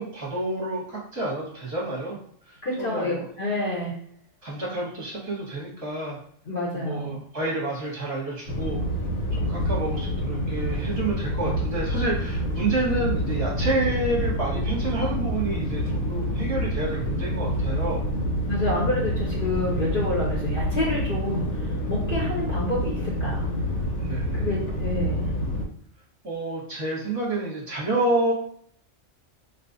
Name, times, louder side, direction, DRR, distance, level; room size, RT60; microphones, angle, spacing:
voice 1, 0.0-2.2 2.5-3.2 4.4-6.2 6.7-8.8 9.3-18.0 24.0-24.3 26.2-28.3, right 2 dB, 15° right, -5 dB, 0.8 m, -29 dB
voice 2, 2.6-4.0 6.5-7.2 18.4-23.5 24.3-25.3, left 1 dB, 50° left, -4 dB, 0.8 m, -28 dB
sound 1, 8.5-25.6, equal, 80° left, 1.0 m, -27 dB
3.7 x 2.4 x 2.6 m, 0.63 s
omnidirectional pair, 1.3 m